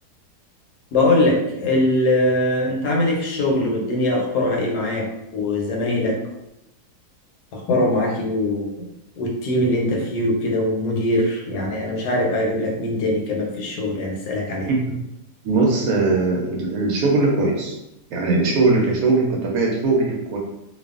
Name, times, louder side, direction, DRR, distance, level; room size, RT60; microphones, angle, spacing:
voice 1, 0.9-6.2 7.5-8.7 9.2-14.7, left 1 dB, 80° left, 0 dB, 1.2 m, -22 dB
voice 2, 15.4-17.8 18.1-20.4, right 3 dB, 70° right, -2 dB, 0.9 m, -20 dB
2.6 x 2.3 x 2.4 m, 0.88 s
omnidirectional pair, 1.7 m